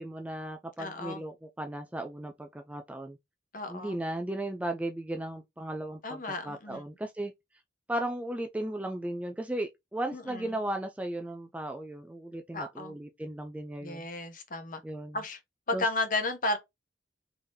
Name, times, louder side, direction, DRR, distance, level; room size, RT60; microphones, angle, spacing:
voice 1, 0.0-3.2 3.7-7.3 7.9-14.1 14.8-15.2 15.7-15.8, right 1 dB, 5° right, 0.3 m, -36 dB
voice 2, 0.8-1.2 3.5-4.0 6.0-6.8 10.1-10.5 12.5-13.0 13.8-14.8 15.1-15.4 15.7-16.6, left 2 dB, 45° left, 0.9 m, -33 dB
3.6 x 3.4 x 2.7 m
head